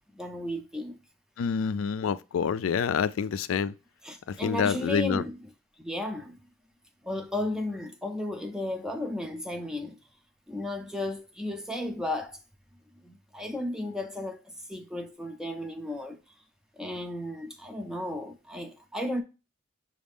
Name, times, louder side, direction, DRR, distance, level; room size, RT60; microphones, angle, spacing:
voice 1, 0.1-1.0 4.0-5.5 5.8-6.4 7.0-10.0 10.5-12.4 13.0-16.2 16.8-19.2, left 1 dB, 5° right, 0.4 m, -34 dB
voice 2, 1.4-3.7 4.4-5.2, left 6 dB, 85° left, 0.3 m, -27 dB
6.1 x 2.5 x 3.4 m
head